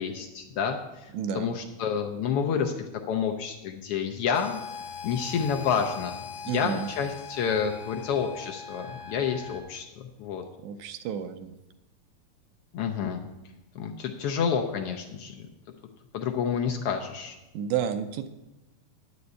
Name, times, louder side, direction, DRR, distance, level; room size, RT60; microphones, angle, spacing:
voice 1, 0.0-4.6 5.0-10.4 12.7-13.2 13.7-15.5 16.1-17.4, left 7 dB, 85° left, 3 dB, 1.3 m, -29 dB
voice 2, 1.1-1.5 6.5-6.9 10.6-11.6 17.5-18.3, right 8 dB, 80° right, 9 dB, 1.9 m, -31 dB
sound 1, 4.3-9.6, left 6 dB, 60° left, 1.4 m, -40 dB
9.6 x 5.2 x 8.1 m, 1.0 s
omnidirectional pair, 3.4 m